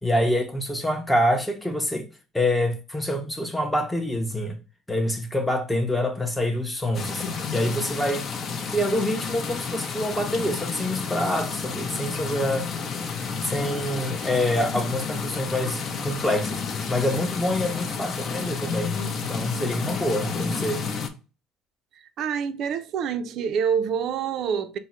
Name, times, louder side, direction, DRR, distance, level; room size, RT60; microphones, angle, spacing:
voice 1, 0.0-2.1 2.3-4.6 4.9-8.3 8.7-12.7 13.4-20.8, left 1 dB, 5° left, 0.7 m, -26 dB
sound 1, 6.9-21.1, left 5 dB, 45° left, 0.6 m, -31 dB
voice 2, 22.0-24.8, right 7 dB, 60° right, 0.4 m, -27 dB
3.6 x 2.1 x 4.2 m
cardioid pair, 115°, 0 cm